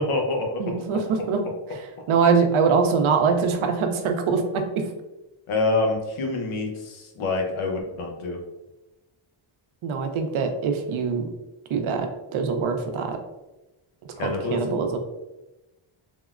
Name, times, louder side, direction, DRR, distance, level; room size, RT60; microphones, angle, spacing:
voice 1, 0.0-0.9 5.5-8.4 14.2-14.8, left 2 dB, 85° left, 1 dB, 0.8 m, -26 dB
voice 2, 0.6-1.4 2.1-4.8 9.8-11.2 11.7-12.1 12.3-13.2 14.2-15.0, right 5 dB, 75° right, 5 dB, 0.6 m, -23 dB
3.6 x 2.0 x 2.4 m, 1.0 s
cardioid pair, 105°, 49 cm